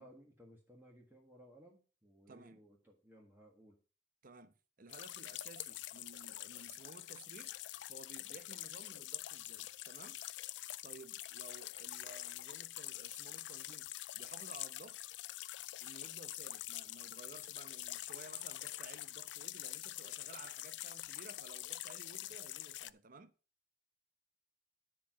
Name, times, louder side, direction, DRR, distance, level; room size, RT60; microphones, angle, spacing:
voice 1, 0.0-3.8, equal, 10° right, 1.5 m, -60 dB
voice 2, 2.3-2.6 4.2-7.5 7.9-10.2 10.8-15.0 15.8-23.3, right 3 dB, 50° right, 0.8 m, -56 dB
sound 1, 4.9-22.9, left 16 dB, 70° left, 0.4 m, -46 dB
10.0 x 4.6 x 5.9 m
head